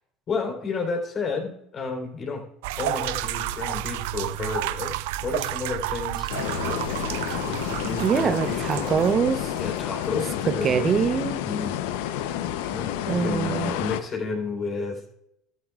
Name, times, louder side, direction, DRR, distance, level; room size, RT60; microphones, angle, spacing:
voice 1, 0.3-2.5 2.8-6.3 6.6-6.8 7.4-8.9 9.6-10.9 11.4-11.8 12.7-15.0, left 4 dB, 45° left, 2 dB, 3.7 m, -31 dB
sound 1, 2.6-10.2, right 15 dB, 80° right, 0.4 m, -31 dB
sound 2, 6.3-14.0, left 11 dB, 80° left, 0.7 m, -30 dB
voice 2, 8.0-9.5 10.5-11.4 13.1-13.7, right 7 dB, 40° right, 13 dB, 0.8 m, -24 dB
14.0 x 12.5 x 2.4 m, 0.78 s
supercardioid pair, 80°, 0 cm